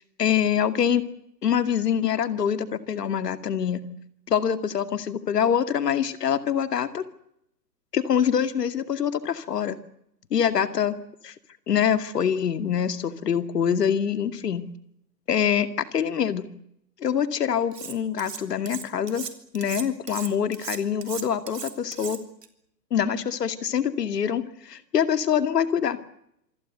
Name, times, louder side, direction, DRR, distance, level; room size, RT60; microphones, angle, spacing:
voice 1, 0.2-1.0 1.4-3.8 4.3-7.0 7.9-9.8 10.3-11.0 11.2-11.3 11.7-14.7 15.3-16.5 17.0-19.2 19.5-22.2 22.9-26.0, left 8 dB, 70° left, 11 dB, 2.4 m, -25 dB
Cutlery silverware, 17.7-18.4 18.7-22.5, right 7 dB, 70° right, 3.7 m, -37 dB
27.0 x 21.0 x 8.1 m, 0.76 s
hypercardioid pair, 125°, 50 cm